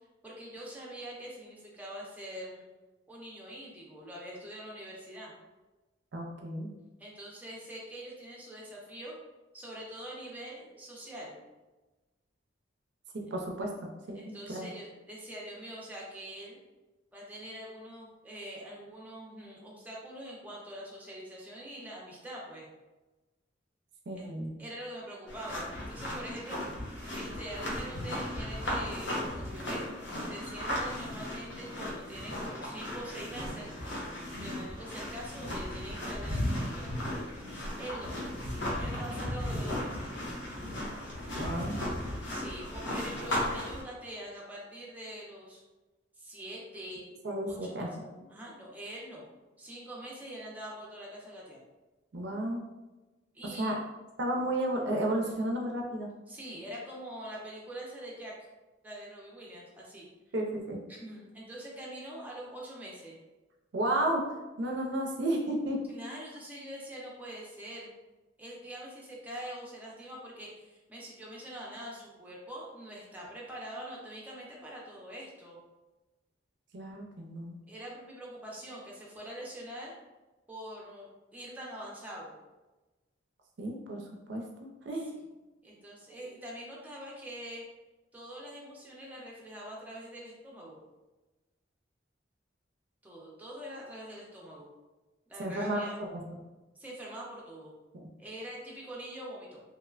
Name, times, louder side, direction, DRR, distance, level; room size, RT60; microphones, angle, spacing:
voice 1, 0.2-2.7 3.1-5.3 7.0-9.1 9.5-11.4 14.1-16.6 17.1-22.7 24.1-24.3 24.6-26.6 27.2-29.9 30.3-33.7 34.4-36.9 37.8-38.2 38.8-40.1 42.3-45.6 46.2-47.1 47.5-47.9 48.3-49.3 49.6-51.6 53.3-53.8 56.3-58.3 58.8-60.1 60.9-63.2 65.9-67.9 68.4-75.6 77.7-80.0 80.5-82.3 85.6-87.6 88.1-90.8 93.0-94.7 95.3-96.0 96.8-97.7 98.2-99.6, right 1 dB, 10° right, -4 dB, 0.5 m, -44 dB
voice 2, 6.1-6.7 13.1-14.7 24.1-24.5 41.4-41.8 47.0-48.3 52.1-52.6 53.6-53.8 54.2-56.1 60.3-60.8 63.7-64.2 64.6-65.8 76.7-77.6 83.6-84.4 84.8-85.1 95.4-96.1 97.9-98.1, right 1 dB, 65° right, 1 dB, 0.5 m, -33 dB
sound 1, 25.3-43.8, left 1 dB, 75° left, 0.9 m, -36 dB
3.0 x 2.1 x 2.3 m, 1.1 s
head